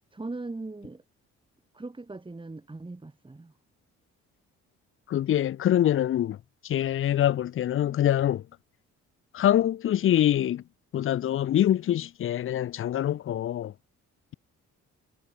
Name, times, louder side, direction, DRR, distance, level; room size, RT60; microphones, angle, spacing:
voice 1, 0.1-1.0 1.7-3.5, right 2 dB, 15° right, 3.3 m, -39 dB
voice 2, 5.1-6.4 6.6-8.4 9.3-10.6 10.9-13.7, left 11 dB, 45° left, 0.5 m, -24 dB
cardioid pair, 90°, 30 cm